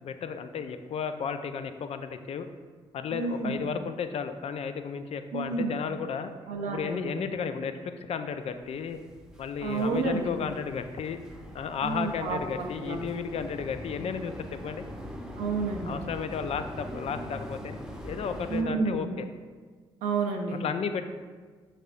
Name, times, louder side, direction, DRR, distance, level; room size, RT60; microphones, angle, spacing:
voice 1, 0.0-2.5 2.9-6.3 6.7-9.0 9.4-11.2 11.5-14.8 15.8-17.7 18.0-19.3 20.6-21.1, left 6 dB, 55° left, 9 dB, 0.4 m, -33 dB
voice 2, 3.1-3.7 5.3-5.8 6.5-7.1 9.6-10.3 11.8-13.0 15.4-16.0 18.5-19.1 20.0-20.6, right 4 dB, 80° right, 3 dB, 0.5 m, -30 dB
sound 1, 8.6-18.6, equal, 5° right, 0.8 m, -42 dB
5.4 x 3.3 x 2.5 m, 1.5 s
hypercardioid pair, 45°, 13 cm